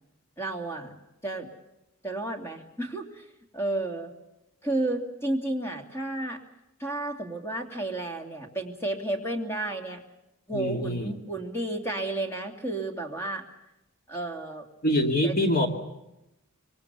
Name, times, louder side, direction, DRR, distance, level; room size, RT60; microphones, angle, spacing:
voice 1, 0.4-1.0 1.2-1.5 2.0-3.2 3.5-4.1 4.6-6.4 6.8-10.0 10.5-13.4 14.1-14.7 15.2-15.3, right 2 dB, 10° left, 3 dB, 2.8 m, -32 dB
voice 2, 10.5-11.2 14.8-15.7, left 1 dB, 45° left, 4 dB, 2.5 m, -25 dB
26.0 x 23.0 x 7.0 m, 0.91 s
head